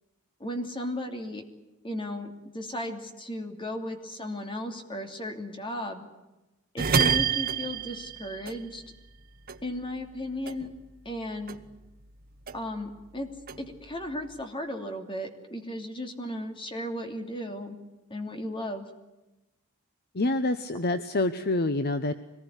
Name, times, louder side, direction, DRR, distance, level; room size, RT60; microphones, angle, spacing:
voice 1, 0.4-1.4 1.8-6.1 6.7-8.8 9.6-10.7 11.0-11.6 12.5-13.3 13.6-17.8 18.1-18.9, left 1 dB, 25° left, 4 dB, 2.9 m, -35 dB
sound 1, 6.8-9.2 9.5-11.2 11.5-12.9 13.2-14.4, right 6 dB, 40° right, 1.2 m, -29 dB
voice 2, 20.1-22.1, left 2 dB, 45° left, 10 dB, 0.9 m, -27 dB
25.0 x 19.5 x 9.9 m, 1.0 s
head